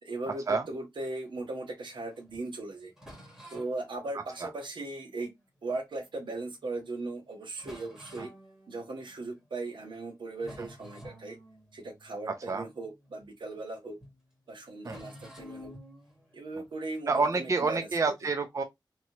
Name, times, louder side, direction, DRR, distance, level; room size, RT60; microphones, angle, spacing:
voice 1, 0.0-2.9 3.5-5.3 5.6-8.3 8.7-11.4 11.7-14.0 14.5-15.7 16.3-17.9, right 2 dB, 80° right, 0.9 m, -38 dB
sound 1, 1.2-6.2 6.8-6.9 7.2-7.3 7.5-9.5 9.9-10.1 10.3-13.7 14.0-14.2 14.8-17.8, equal, 5° right, 1.6 m, -52 dB
voice 2, 17.1-18.6, right 4 dB, 40° right, 0.4 m, -28 dB
3.0 x 2.8 x 2.7 m
wide cardioid pair, 95°, 8 cm